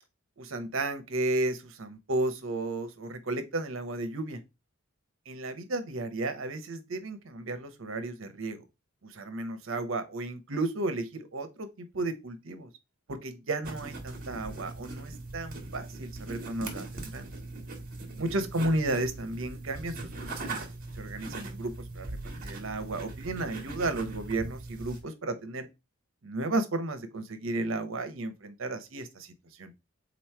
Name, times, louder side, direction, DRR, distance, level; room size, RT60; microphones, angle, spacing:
voice 1, 0.4-4.4 5.3-8.6 9.0-12.7 13.1-17.3 18.2-20.7 20.9-22.1 22.4-25.7 26.2-29.3 29.6-29.7, right 2 dB, 65° right, 0.8 m, -33 dB
sound 1, 13.6-25.0, right 2 dB, 40° right, 1.2 m, -40 dB
3.9 x 3.1 x 4.4 m
head